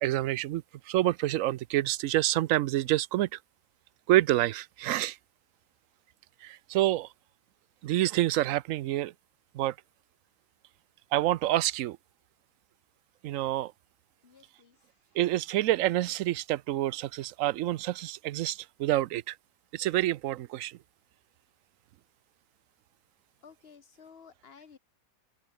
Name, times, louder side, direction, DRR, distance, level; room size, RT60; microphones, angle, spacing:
voice 1, 0.0-3.4 4.1-5.2 6.4-7.1 7.8-9.1 9.5-9.7 11.1-12.0 13.2-13.7 15.1-19.4 19.7-20.8, right 14 dB, 70° right, 0.9 m, -27 dB
voice 2, 14.2-14.9 23.4-24.8, left 6 dB, 45° left, 1.5 m, -54 dB
open air
omnidirectional pair, 1.5 m